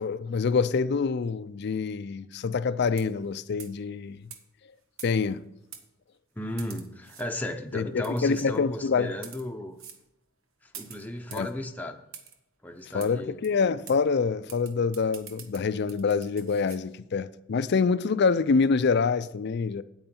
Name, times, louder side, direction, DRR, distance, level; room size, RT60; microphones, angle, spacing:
voice 1, 0.0-4.2 5.0-5.4 7.7-9.1 11.3-11.5 12.9-19.8, left 5 dB, 55° left, 0.4 m, -26 dB
sound 1, 2.9-3.3 3.6-3.8 4.3-4.4 5.0-5.4 5.7-5.9 6.6-7.3 8.0-8.5 9.1-9.5 9.8-10.0 10.7-11.5 12.1-12.4 13.0-13.1 13.4-13.5 13.9-14.0 14.5-16.8, right 7 dB, 85° right, 1.1 m, -46 dB
voice 2, 6.4-9.8 10.6-12.0 12.6-13.4, left 1 dB, 10° left, 0.6 m, -35 dB
9.1 x 8.8 x 4.4 m
head